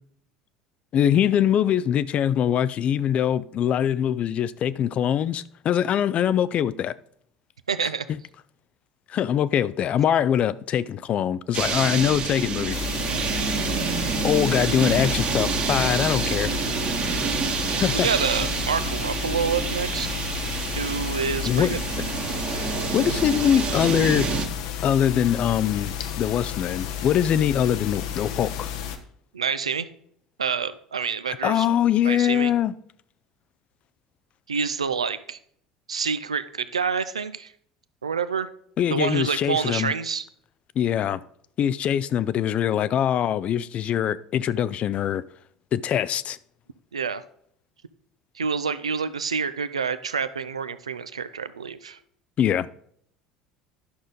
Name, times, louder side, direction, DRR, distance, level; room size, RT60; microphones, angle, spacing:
voice 1, 0.9-6.9 9.1-12.8 14.2-16.5 17.8-18.1 21.4-21.8 22.6-24.3 24.8-28.7 31.4-32.7 38.8-39.9 40.8-41.2 41.6-45.2 45.7-46.4 52.4-52.7, left 9 dB, 40° left, 0.4 m, -23 dB
voice 2, 7.7-8.1 13.1-13.2 18.0-20.2 20.7-21.8 29.3-29.9 30.4-31.7 32.0-32.5 34.5-35.4 35.9-37.5 38.0-38.5 38.9-40.2 46.9-47.2 48.4-52.0, right 6 dB, 80° right, 0.4 m, -27 dB
sound 1, 11.5-24.4, right 6 dB, 40° right, 1.3 m, -28 dB
sound 2, 12.7-29.0, left 9 dB, 60° left, 0.8 m, -32 dB
11.0 x 6.3 x 3.8 m
figure-of-eight pair, 65°, 3 cm